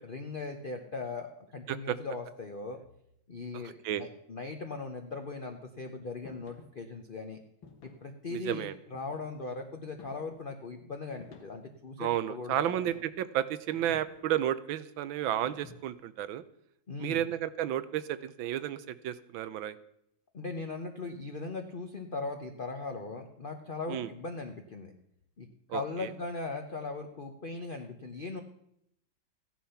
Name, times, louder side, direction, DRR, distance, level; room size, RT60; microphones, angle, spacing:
voice 1, 0.1-2.8 3.3-7.4 7.8-12.8 16.9-17.2 20.3-24.9 25.4-28.4, left 3 dB, 35° left, 4 dB, 0.9 m, -39 dB
voice 2, 3.5-4.0 8.3-8.8 12.0-16.4 17.0-19.8 23.9-24.1 25.7-26.1, right 11 dB, 85° right, 15 dB, 1.5 m, -32 dB
sound 1, 6.3-6.7 7.6-8.1 8.9-9.5 10.0-10.5 11.2-11.8 12.7-13.2 13.7-14.4 15.5-16.1, left 5 dB, 85° left, 2.3 m, -53 dB
14.5 x 10.5 x 5.7 m, 0.75 s
omnidirectional pair, 2.1 m